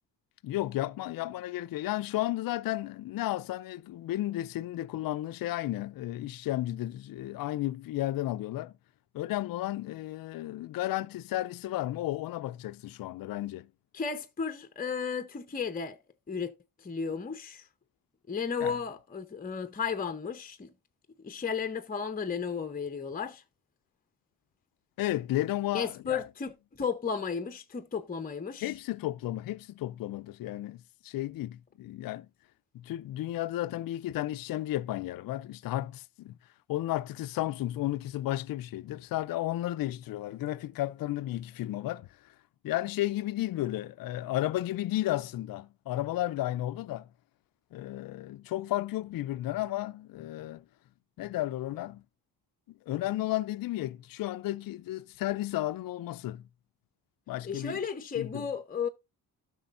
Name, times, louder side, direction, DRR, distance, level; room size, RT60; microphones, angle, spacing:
voice 1, 0.4-8.7 9.1-13.7 18.6-18.7 25.0-26.2 28.6-32.3 32.7-36.4 36.7-42.1 42.6-47.1 47.7-50.6 51.2-52.0 52.9-56.4 57.3-57.8 58.2-58.5, left 15 dB, 60° left, 0.5 m, -33 dB
voice 2, 13.9-16.0 16.3-16.5 16.8-17.7 18.3-20.7 21.2-23.4 25.7-28.7 57.4-58.9, left 6 dB, 20° left, 0.8 m, -34 dB
12.5 x 6.3 x 2.5 m
cardioid pair, 75°, 39 cm